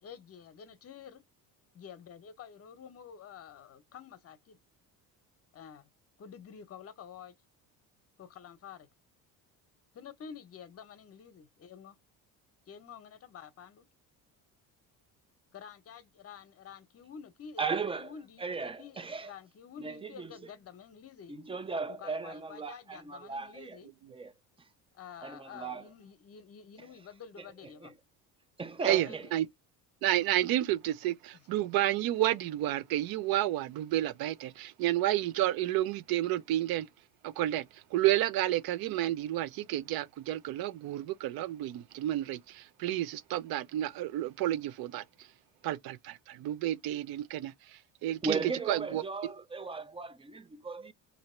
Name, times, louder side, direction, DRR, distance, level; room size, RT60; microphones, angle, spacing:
voice 1, 0.0-1.2 1.7-4.6 5.5-5.9 6.2-7.3 8.2-8.9 9.9-12.0 12.7-13.9 15.5-18.4 18.8-21.4 21.9-23.9 24.9-27.9 28.9-29.4 31.3-31.4, left 7 dB, 40° left, 0.8 m, -49 dB
voice 2, 17.6-18.1 18.4-19.3 19.8-20.3 21.3-23.8 24.1-24.3 24.6-24.7 25.2-25.8 27.8-27.9 28.6-29.3 48.2-50.9, right 4 dB, 15° right, 0.4 m, -36 dB
voice 3, 28.8-29.5 30.0-36.9 37.2-45.3 45.6-49.0, right 14 dB, 65° right, 0.6 m, -31 dB
2.9 x 2.8 x 4.2 m
cardioid pair, 110°, 38 cm